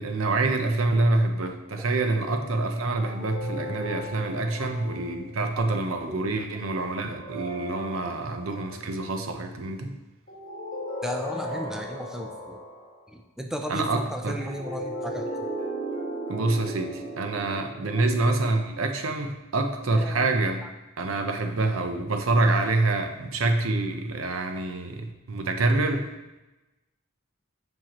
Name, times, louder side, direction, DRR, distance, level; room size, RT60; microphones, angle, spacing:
voice 1, 0.0-10.0 13.7-14.4 16.3-20.6 21.0-26.1, right 2 dB, 80° right, 5 dB, 0.8 m, -26 dB
sound 1, 2.9-5.4 7.0-8.9 10.3-13.0 14.3-18.8, equal, 40° left, 2.4 m, -36 dB
voice 2, 6.1-6.4 11.0-12.6 13.1-15.3 17.9-18.2 20.0-20.3, equal, ahead, 2 dB, 0.4 m, -35 dB
7.5 x 5.6 x 3.0 m, 1.0 s
head